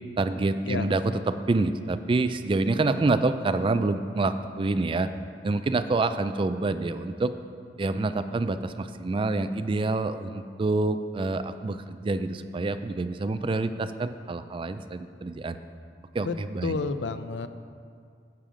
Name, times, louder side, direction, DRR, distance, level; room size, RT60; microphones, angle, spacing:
voice 1, 0.2-1.0 1.3-5.1 5.4-7.3 7.8-15.6 16.1-16.8, right 3 dB, 30° right, 11 dB, 0.3 m, -27 dB
voice 2, 16.2-17.5, left 4 dB, 80° left, 11 dB, 0.5 m, -31 dB
10.5 x 7.5 x 4.9 m, 2.2 s
head